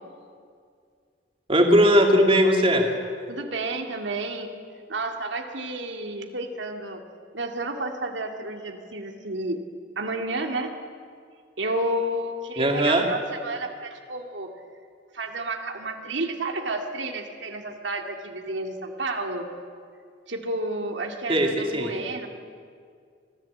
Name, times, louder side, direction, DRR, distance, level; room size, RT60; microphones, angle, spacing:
voice 1, 1.5-2.8 12.6-13.0 21.3-21.9, equal, 30° right, 2 dB, 2.5 m, -19 dB
voice 2, 3.3-4.5 4.9-7.0 7.3-9.6 10.0-10.7 11.6-14.5 15.1-19.5 20.3-22.3, right 2 dB, 90° right, 3 dB, 2.2 m, -31 dB
25.0 x 16.0 x 8.5 m, 2.2 s
head